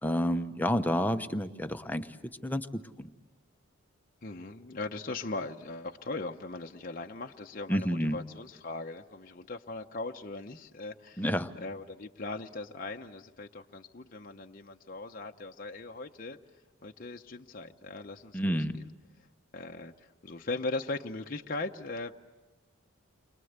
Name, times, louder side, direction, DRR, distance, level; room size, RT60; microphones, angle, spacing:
voice 1, 0.0-3.1 7.7-8.2 11.2-11.5 18.3-18.8, equal, 10° left, 8 dB, 0.9 m, -30 dB
voice 2, 4.2-11.2 11.6-16.4 16.8-18.9 19.5-22.1, left 3 dB, 40° left, 3 dB, 0.8 m, -39 dB
30.0 x 24.5 x 8.1 m, 1.2 s
head